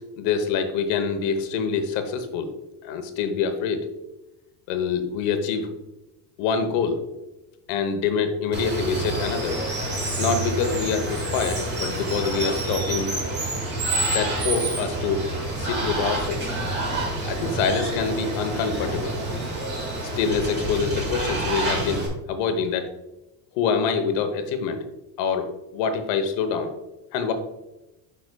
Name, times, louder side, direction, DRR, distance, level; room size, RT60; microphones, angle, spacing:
voice 1, 0.0-2.5 2.8-3.9 4.7-5.7 6.4-7.0 7.7-9.6 10.2-13.1 14.1-15.2 15.6-16.5 17.2-19.2 20.2-22.0 22.3-22.8 23.5-24.8 25.2-26.7 27.1-27.3, left 6 dB, 85° left, 7 dB, 1.1 m, -25 dB
Water, 8.5-22.1, right 2 dB, 25° right, 1.3 m, -28 dB
8.0 x 6.0 x 2.3 m, 0.97 s
cardioid pair, 180°, 45 cm